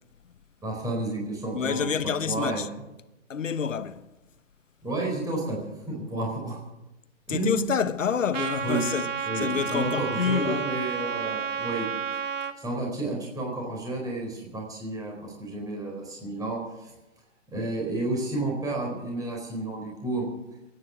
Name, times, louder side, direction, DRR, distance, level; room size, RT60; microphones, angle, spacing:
voice 1, 0.6-1.9 2.2-2.6 4.8-5.6 5.9-6.6 7.3-7.7 8.6-8.8 9.2-11.9 12.6-17.0 17.5-20.2, right 2 dB, 10° right, 4.5 m, -31 dB
voice 2, 1.5-2.7 3.3-4.1 7.3-9.1 9.3-10.7, left 7 dB, 80° left, 1.2 m, -28 dB
Trumpet, 8.3-12.5, right 7 dB, 75° right, 1.6 m, -31 dB
23.0 x 9.9 x 6.2 m
hypercardioid pair, 140°, 38 cm